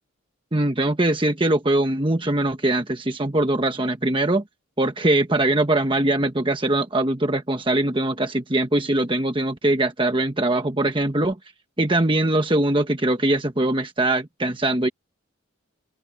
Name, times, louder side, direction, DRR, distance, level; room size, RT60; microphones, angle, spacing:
voice 1, 0.5-4.4 4.8-11.4 11.8-14.9, right 1 dB, 25° right, 1.2 m, -22 dB
open air
head